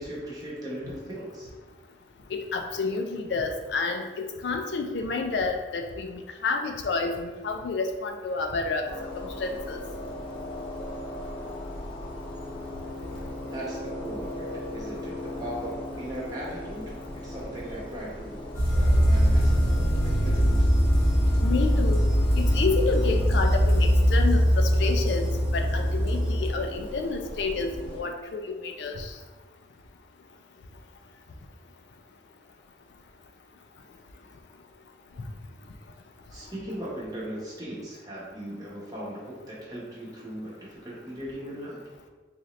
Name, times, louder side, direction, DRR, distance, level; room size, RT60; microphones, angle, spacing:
voice 1, 0.0-1.5 13.5-18.4 18.7-20.6 36.3-41.8, right 1 dB, 20° right, -6 dB, 1.0 m, -38 dB
voice 2, 2.3-8.9 9.1-9.8 21.4-22.0 22.4-29.1, left 4 dB, 70° left, 4 dB, 0.4 m, -30 dB
sound 1, 8.8-28.0, left 1 dB, 30° left, 0.8 m, -38 dB
sound 2, 18.5-26.5, equal, 15° left, 1.3 m, -22 dB
3.9 x 2.7 x 3.1 m, 1.3 s
head